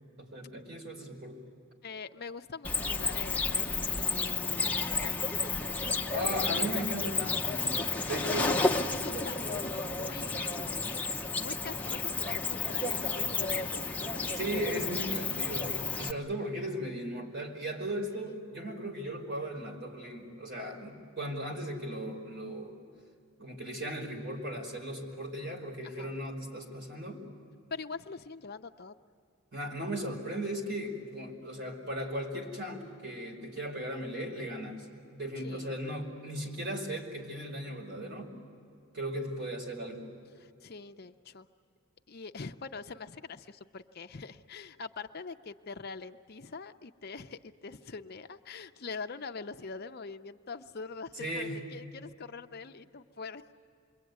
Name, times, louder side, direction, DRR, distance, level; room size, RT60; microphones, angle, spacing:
voice 1, 0.2-1.4 6.1-8.5 14.3-22.7 23.4-27.2 29.5-34.9 35.1-38.3 38.9-40.1 51.2-51.6, equal, 50° right, 1 dB, 5.0 m, -37 dB
voice 2, 1.8-5.5 8.2-8.4 8.9-14.3 25.8-26.2 27.7-28.9 35.4-35.7 40.4-41.5 42.1-53.5, left 4 dB, 45° left, 8 dB, 0.6 m, -44 dB
Cricket, 2.6-16.1, left 3 dB, 5° left, 0.7 m, -32 dB
28.0 x 22.5 x 9.4 m, 2.5 s
head